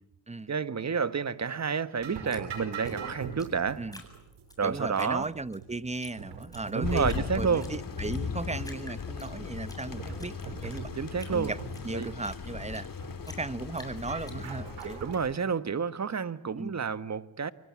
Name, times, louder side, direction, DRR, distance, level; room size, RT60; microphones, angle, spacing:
voice 1, 0.5-3.8 4.6-5.3 6.7-7.7 10.9-11.5 11.9-12.1 15.0-17.5, right 6 dB, 35° right, 1.5 m, -30 dB
sound 1, 2.0-15.2, right 6 dB, 90° right, 5.2 m, -44 dB
Drip, 2.3-4.6 5.0-5.6 6.0-6.1 6.4-7.2 7.6-8.2 8.6-9.8 10.1-12.9 13.2-14.9, left 1 dB, 10° left, 7.9 m, -49 dB
voice 2, 4.6-10.9 11.3-11.6 11.8-12.9 13.3-15.0 16.6-16.8, right 3 dB, 15° right, 1.0 m, -36 dB
Thunder, 6.8-15.3, left 5 dB, 45° left, 3.1 m, -37 dB
27.5 x 24.5 x 8.6 m
cardioid pair, 70°, 46 cm